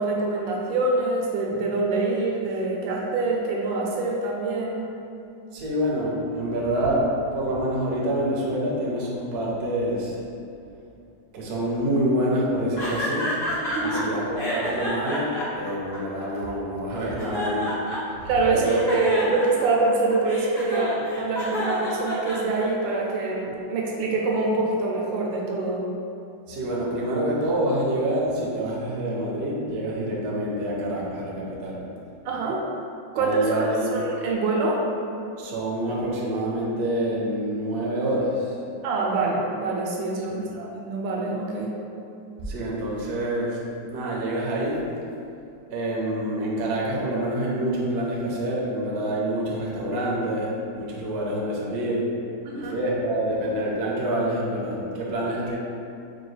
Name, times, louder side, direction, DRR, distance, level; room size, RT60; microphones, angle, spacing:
voice 1, 0.0-4.9 13.7-14.0 18.3-25.9 32.2-32.6 33.1-34.8 38.8-41.7 52.5-52.8, right 3 dB, 85° right, -2 dB, 1.3 m, -25 dB
voice 2, 5.5-10.2 11.3-13.4 13.8-17.8 18.1-18.9 26.5-31.8 33.2-34.0 35.4-38.6 40.3-40.4 42.4-44.9 45.7-52.1 52.5-55.6, right 1 dB, 65° right, -4 dB, 0.6 m, -27 dB
sound 1, 12.8-14.0 14.4-16.5 17.0-18.2 18.6-22.9, left 1 dB, 35° left, 0.7 m, -30 dB
5.0 x 2.3 x 3.2 m, 2.6 s
omnidirectional pair, 2.0 m